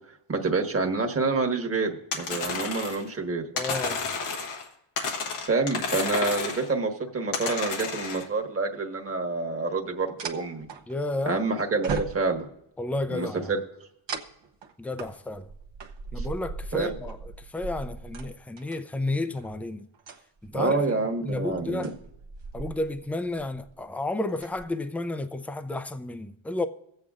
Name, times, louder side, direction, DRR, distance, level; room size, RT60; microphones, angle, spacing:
voice 1, 0.3-3.4 5.4-10.7 11.2-12.4 13.1-13.6 16.2-16.3 16.7-16.9 20.5-21.9, right 3 dB, 25° right, 1.4 m, -27 dB
sound 1, 2.1-3.1 3.6-4.7 5.0-6.7 7.3-8.3, left 4 dB, 85° left, 1.4 m, -31 dB
voice 2, 3.5-4.1 10.9-11.4 12.8-13.5 14.8-15.5 16.1-19.9 20.4-20.9 21.2-21.9 22.5-26.7, left 2 dB, 5° left, 0.4 m, -32 dB
sound 2, 9.1-9.2 10.2-11.4 11.8-12.6 14.1-18.8 19.4-19.6 19.9-20.7 21.3-23.1 23.4-23.7 24.2-24.6, right 4 dB, 60° right, 1.0 m, -38 dB
23.0 x 7.9 x 2.5 m
cardioid pair, 65°, 50 cm